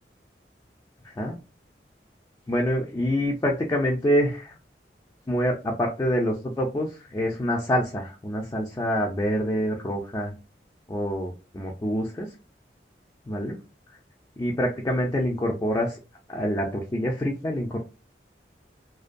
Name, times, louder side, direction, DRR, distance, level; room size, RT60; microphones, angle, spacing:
voice 1, 2.5-4.5 5.3-10.3 10.9-12.3 13.3-13.6 14.4-16.0 16.3-17.8, equal, 20° left, 0 dB, 0.3 m, -26 dB
2.5 x 2.2 x 2.4 m, 0.31 s
head